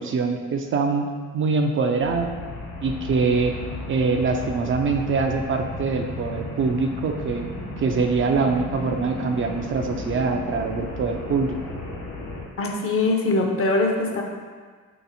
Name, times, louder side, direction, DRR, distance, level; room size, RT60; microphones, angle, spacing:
voice 1, 0.0-2.3 2.8-3.6 3.9-7.5 7.8-11.5, right 4 dB, 45° right, 4 dB, 0.4 m, -24 dB
sound 1, 2.0-12.4, left 2 dB, 85° left, 1.0 m, -34 dB
voice 2, 12.6-14.2, left 2 dB, 45° left, 2 dB, 0.6 m, -22 dB
3.3 x 2.9 x 4.0 m, 1.5 s
cardioid pair, 90°, 30 cm